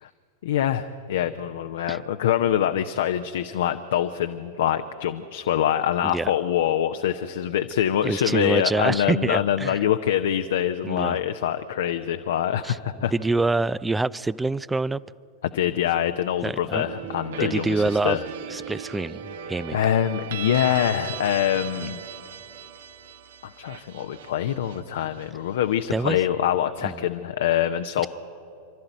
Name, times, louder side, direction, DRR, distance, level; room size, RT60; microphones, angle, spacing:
voice 1, 0.4-13.1 15.4-18.2 19.7-22.0 23.4-28.1, left 10 dB, 60° left, 8 dB, 0.7 m, -25 dB
voice 2, 8.0-9.8 10.8-11.2 12.6-12.8 13.1-15.0 16.4-16.9 17.4-18.2 18.5-19.8 21.8-21.9 25.9-26.2 26.8-26.9, right 3 dB, 10° right, 20 dB, 0.4 m, -26 dB
sound 1, 16.8-25.7, right 8 dB, 60° right, 1.1 m, -38 dB
28.0 x 13.0 x 9.2 m, 2.7 s
figure-of-eight pair, 90°, 0 cm